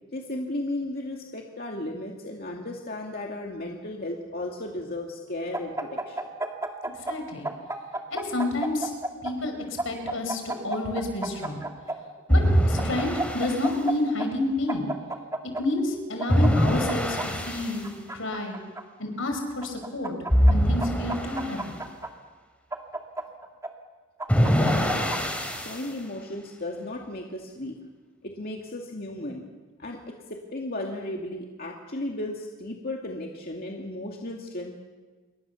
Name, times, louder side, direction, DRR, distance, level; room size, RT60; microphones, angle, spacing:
voice 1, 0.1-6.2 24.4-25.1 25.6-27.8 28.2-29.5 29.8-34.8, left 1 dB, 45° left, 0 dB, 2.3 m, -35 dB
sound 1, 5.5-7.2 7.4-9.3 9.8-12.0 12.8-13.9 14.2-14.3 14.7-15.6 16.2-17.3 17.8-18.8 19.6-20.5 20.8-22.1 22.7-23.7 24.2-25.2, right 2 dB, 15° right, 2.2 m, -31 dB
voice 2, 7.1-7.5 8.1-8.9 9.2-11.7 12.3-12.4 12.7-14.9 15.6-18.6 19.0-20.1 20.5-21.8, left 2 dB, 75° left, 5 dB, 6.0 m, -29 dB
sound 2, 12.3-13.7 16.3-17.8 20.3-21.7 24.3-25.9, equal, 5° left, 3.7 m, -23 dB
28.0 x 24.0 x 7.1 m, 1.4 s
head